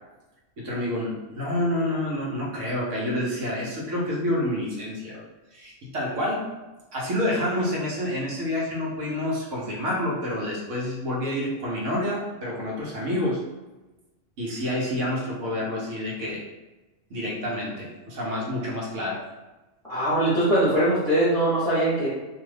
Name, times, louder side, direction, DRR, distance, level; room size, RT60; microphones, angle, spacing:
voice 1, 0.6-5.2 5.5-6.5 6.9-13.4 14.4-16.4 17.1-19.2, left 1 dB, 75° right, -4 dB, 1.2 m, -28 dB
voice 2, 19.8-22.1, right 1 dB, 5° left, -10 dB, 0.8 m, -22 dB
2.7 x 2.4 x 3.2 m, 1.1 s
omnidirectional pair, 1.3 m